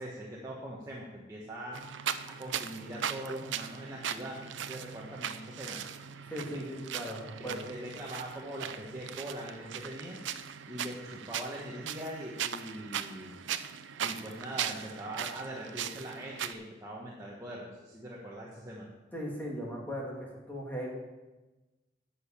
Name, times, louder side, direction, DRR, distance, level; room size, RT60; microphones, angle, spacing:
voice 1, 0.0-1.8 2.3-5.8 6.5-6.6 7.4-10.2 10.7-13.4 14.0-18.9, right 1 dB, 15° right, -5 dB, 1.4 m, -42 dB
sound 1, 1.7-16.5, right 9 dB, 75° right, 0.6 m, -39 dB
voice 2, 6.3-7.7 19.1-20.9, equal, 10° left, -3 dB, 2.5 m, -38 dB
11.0 x 6.5 x 7.2 m, 1.1 s
head